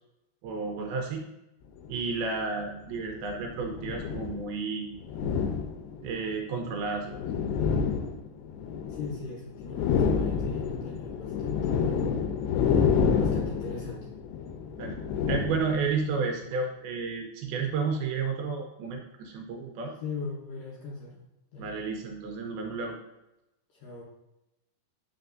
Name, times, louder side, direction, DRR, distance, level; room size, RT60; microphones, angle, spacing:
voice 1, 0.4-1.2 1.9-4.9 6.0-7.2 14.8-15.0 15.3-19.9 21.6-23.0, right 4 dB, 80° right, 2 dB, 2.4 m, -31 dB
sound 1, 1.8-2.0 3.0-4.5 5.0-6.2 6.8-9.2 9.5-16.1, left 6 dB, 85° left, 2.7 m, -29 dB
voice 2, 8.9-12.0 13.2-14.1 20.0-21.2 21.5-21.7 23.7-24.0, left 4 dB, 70° left, -3 dB, 2.1 m, -40 dB
6.7 x 5.9 x 2.6 m, 0.92 s
omnidirectional pair, 4.8 m